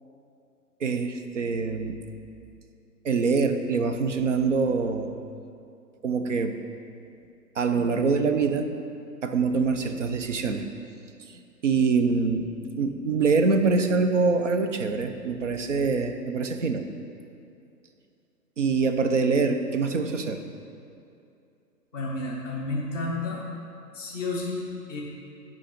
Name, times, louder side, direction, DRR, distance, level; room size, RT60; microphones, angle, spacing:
voice 1, 0.8-2.0 3.0-5.1 6.0-6.5 7.6-8.7 9.2-10.6 11.3-12.5 12.8-16.9 18.6-20.4, right 4 dB, 50° right, 7 dB, 0.6 m, -24 dB
voice 2, 21.9-23.4 23.9-25.0, left 2 dB, 10° right, -6 dB, 0.6 m, -31 dB
8.3 x 5.2 x 5.1 m, 2.6 s
hypercardioid pair, 165°, 49 cm